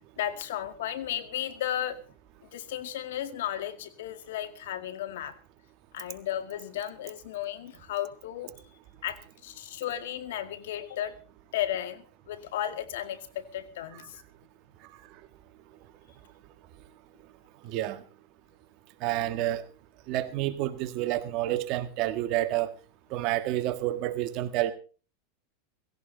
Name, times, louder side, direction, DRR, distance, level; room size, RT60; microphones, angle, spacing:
voice 1, 0.2-2.0 2.4-5.4 5.9-8.5 9.0-11.1 11.5-14.2, left 11 dB, 80° left, 2.0 m, -34 dB
voice 2, 17.6-18.0 19.0-19.7 20.1-22.8 23.1-24.7, right 14 dB, 50° right, 1.8 m, -29 dB
17.5 x 16.5 x 4.0 m
supercardioid pair, 130°, 0 cm